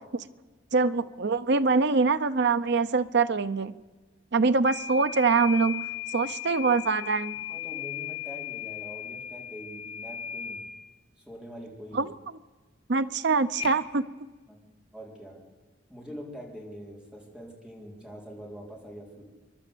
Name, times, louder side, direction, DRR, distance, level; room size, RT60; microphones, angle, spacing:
voice 1, 0.7-3.7 4.3-7.4 11.9-12.1 12.9-14.0, right 4 dB, 65° right, 13 dB, 0.8 m, -24 dB
sound 1, 4.7-10.8 13.5-13.8, left 9 dB, 30° left, 1.6 m, -37 dB
voice 2, 7.5-10.6 11.2-12.0 14.5-15.4 15.9-19.2, equal, 5° right, -1 dB, 4.5 m, -44 dB
27.0 x 11.5 x 8.5 m, 1.3 s
head